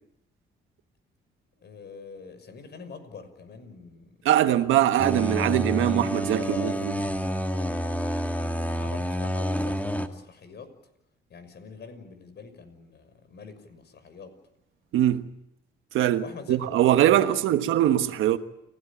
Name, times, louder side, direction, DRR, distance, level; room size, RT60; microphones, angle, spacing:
voice 1, 1.6-4.9 6.3-8.4 8.8-10.7 11.3-14.3 16.2-17.2, left 5 dB, 60° left, 6.2 m, -45 dB
voice 2, 4.2-6.9 14.9-15.3 15.9-18.4, right 12 dB, 85° right, 1.4 m, -22 dB
sound 1, 5.0-10.1, equal, 10° left, 2.3 m, -28 dB
29.5 x 16.5 x 8.7 m
cardioid pair, 90°, 20 cm